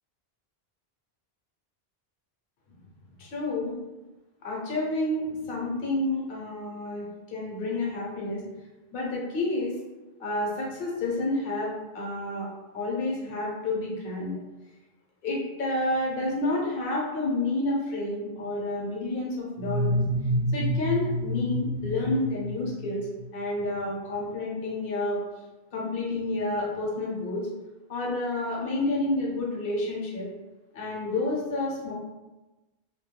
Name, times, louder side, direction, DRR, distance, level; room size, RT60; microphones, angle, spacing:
voice 1, 3.2-3.7 4.4-8.4 8.9-9.7 10.2-12.5 12.7-14.4 15.2-20.0 20.5-25.2 25.7-27.5 27.9-30.3 30.7-31.9, left 2 dB, 60° left, -3 dB, 0.9 m, -29 dB
sound 1, 19.6-23.3, equal, 75° right, 0.8 m, -28 dB
2.2 x 2.2 x 2.9 m, 1.1 s
omnidirectional pair, 1.1 m